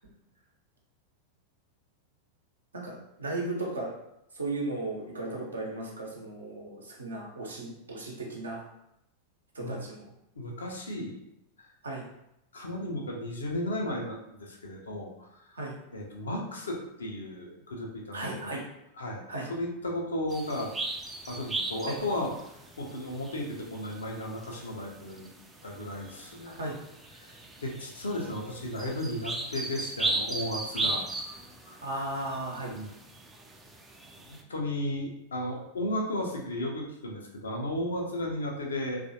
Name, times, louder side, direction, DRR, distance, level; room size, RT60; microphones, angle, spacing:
voice 1, 2.7-3.9 4.3-8.6 9.5-10.1 11.8-12.0 15.5-15.8 18.1-18.6 19.3-19.5 21.9-22.0 26.5-26.8 30.7-30.9 31.8-32.7, right 2 dB, 75° right, -2 dB, 0.8 m, -36 dB
voice 2, 10.4-11.2 12.5-15.3 15.9-18.6 19.0-20.7 21.3-22.3 22.8-25.3 25.6-26.6 27.2-31.3 31.7-31.8 32.7-32.9 34.3-39.0, left 1 dB, 70° left, 0 dB, 0.6 m, -34 dB
sound 1, 20.3-34.4, right 2 dB, 15° right, 0.4 m, -37 dB
3.0 x 2.5 x 2.7 m, 0.82 s
figure-of-eight pair, 90°, 0 cm